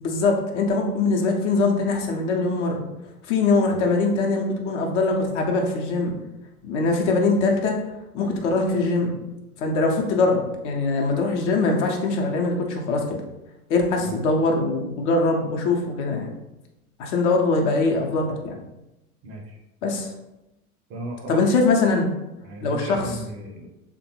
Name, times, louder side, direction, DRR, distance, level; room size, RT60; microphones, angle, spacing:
voice 1, 0.0-2.8 3.3-6.2 6.6-7.8 8.1-9.2 9.6-13.2 13.7-16.3 17.0-18.6 19.8-20.1 21.3-22.1 22.6-23.0, left 3 dB, 50° left, 1 dB, 0.7 m, -22 dB
voice 2, 14.0-14.5 19.2-19.6 20.9-21.4 22.4-23.7, right 1 dB, 35° right, 0 dB, 0.6 m, -36 dB
3.4 x 2.2 x 2.9 m, 0.94 s
figure-of-eight pair, 90°, 45 cm